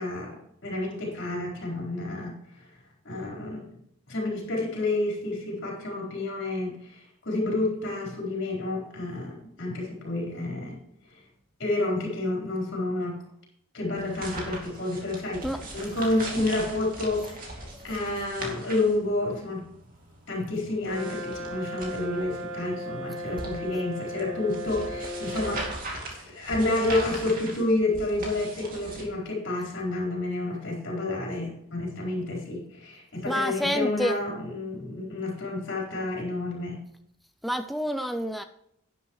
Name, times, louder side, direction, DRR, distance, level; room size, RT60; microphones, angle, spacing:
voice 1, 0.0-2.4 3.0-3.7 4.1-10.8 11.6-13.2 13.7-15.5 15.7-19.7 20.3-36.8, left 2 dB, 55° left, -2 dB, 4.3 m, -29 dB
sound 1, 14.0-29.0, right 2 dB, 40° right, 2.5 m, -40 dB
voice 2, 15.4-15.9 33.3-34.2 37.4-38.4, equal, ahead, 7 dB, 0.4 m, -28 dB
Brass instrument, 20.8-25.7, equal, 65° right, 1.5 m, -36 dB
11.5 x 10.5 x 3.2 m, 0.75 s
head